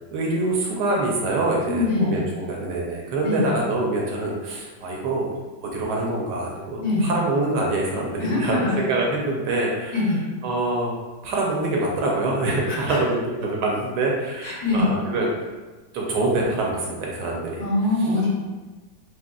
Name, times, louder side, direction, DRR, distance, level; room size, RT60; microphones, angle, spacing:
voice 1, 0.1-5.3 5.6-10.0 10.4-10.9 11.2-15.3 15.9-17.6, right 2 dB, 75° right, -2 dB, 1.1 m, -25 dB
voice 2, 1.7-2.2 3.2-3.5 6.8-7.1 8.2-8.8 9.9-10.2 12.7-13.0 14.4-14.9 17.6-18.3, left 2 dB, 75° left, -9 dB, 1.8 m, -23 dB
4.8 x 2.0 x 2.2 m, 1.3 s
omnidirectional pair, 2.0 m